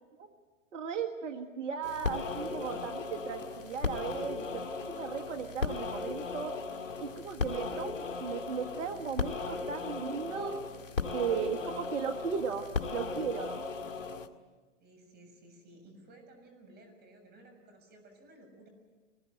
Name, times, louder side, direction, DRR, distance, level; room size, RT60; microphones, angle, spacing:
voice 1, 0.7-6.5 7.0-10.6 11.1-13.6, right 6 dB, 75° right, 6 dB, 1.7 m, -36 dB
sound 1, 1.8-14.3, left 4 dB, 90° left, 2.0 m, -37 dB
voice 2, 14.8-18.7, right 1 dB, 25° right, 5 dB, 6.9 m, -56 dB
23.5 x 20.5 x 9.0 m, 1.4 s
hypercardioid pair, 120°, 37 cm